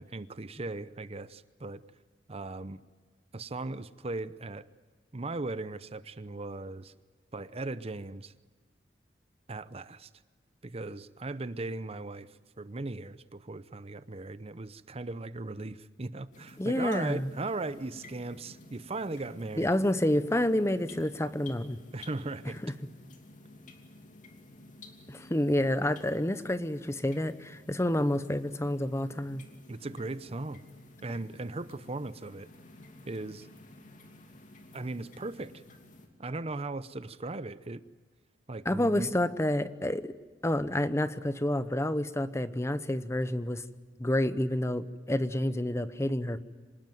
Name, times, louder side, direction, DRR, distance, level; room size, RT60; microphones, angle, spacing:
voice 1, 0.0-1.8 2.3-2.8 3.3-4.7 5.1-6.9 7.3-8.3 9.5-10.1 10.6-12.3 12.6-19.7 21.9-22.6 29.7-30.6 31.0-32.5 33.1-33.5 34.7-35.5 36.2-37.8 38.5-39.1, right 2 dB, 35° right, 14 dB, 0.7 m, -38 dB
sound 1, 16.3-36.1, left 2 dB, 45° left, 2.9 m, -53 dB
voice 2, 16.6-17.3 19.6-21.8 22.6-22.7 25.1-29.4 38.6-40.1 40.4-43.6 44.0-46.4, left 1 dB, 15° left, 13 dB, 0.8 m, -29 dB
25.5 x 20.0 x 9.3 m, 1.4 s
head